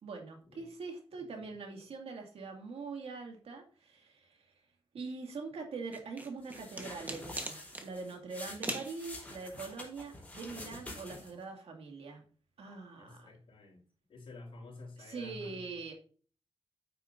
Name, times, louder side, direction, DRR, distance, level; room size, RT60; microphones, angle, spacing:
voice 1, 0.0-4.5 4.9-12.2 12.6-13.3 15.0-15.9, right 4 dB, 75° right, 3 dB, 2.3 m, -43 dB
sound 1, 5.9-7.9 8.6-8.9, right 1 dB, 15° right, 1.4 m, -39 dB
sound 2, 6.4-11.4, left 1 dB, 15° left, 4.2 m, -47 dB
voice 2, 13.0-13.8 14.1-15.8, left 2 dB, 60° left, -2 dB, 4.0 m, -50 dB
9.0 x 8.9 x 2.7 m, 0.42 s
wide cardioid pair, 145°, 10 cm